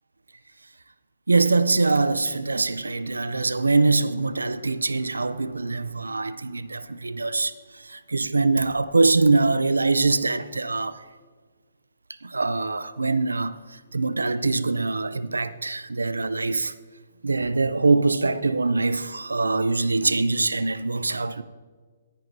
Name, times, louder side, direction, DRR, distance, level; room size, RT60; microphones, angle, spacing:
voice 1, 1.3-7.5 7.9-11.0 12.2-13.6 13.9-16.7 17.2-21.4, right 3 dB, 90° right, 0.5 m, -23 dB
17.5 x 11.0 x 2.7 m
figure-of-eight pair, 130°, 0 cm